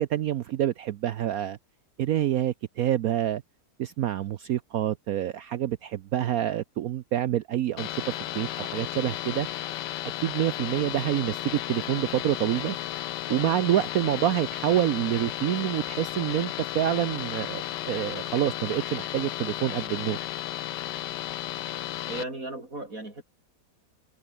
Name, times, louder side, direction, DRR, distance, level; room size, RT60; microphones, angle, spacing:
voice 1, 0.0-1.6 2.0-3.4 3.8-8.0 8.3-9.5 10.2-12.8 13.3-20.2, right 12 dB, 65° right, 1.0 m, -27 dB
sound 1, 7.8-22.2, left 13 dB, 80° left, 1.4 m, -34 dB
voice 2, 22.1-23.2, right 2 dB, 50° right, 6.0 m, -36 dB
omnidirectional pair, 1.9 m